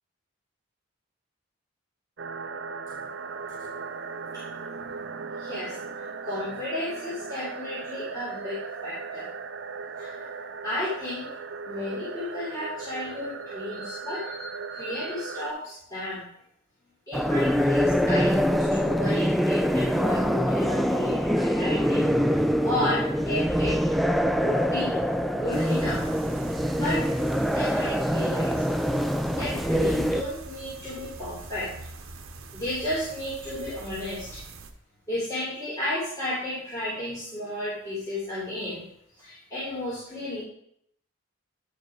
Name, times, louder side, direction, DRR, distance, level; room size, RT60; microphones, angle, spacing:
sound 1, 2.2-15.5, right 5 dB, 55° right, 0.6 m, -37 dB
voice 1, 5.4-9.3 10.0-11.3 11.6-16.3 17.1-24.0 24.4-25.0 25.3-26.0 26.7-27.1 27.5-28.6 29.3-31.9 32.5-34.4 35.1-38.8 39.2-40.4, left 1 dB, 20° left, -10 dB, 3.3 m, -33 dB
sound 2, 17.1-30.2, equal, ahead, 0.3 m, -24 dB
sound 3, 25.5-34.7, right 3 dB, 85° right, 0.9 m, -43 dB
10.5 x 5.1 x 4.7 m, 0.71 s
head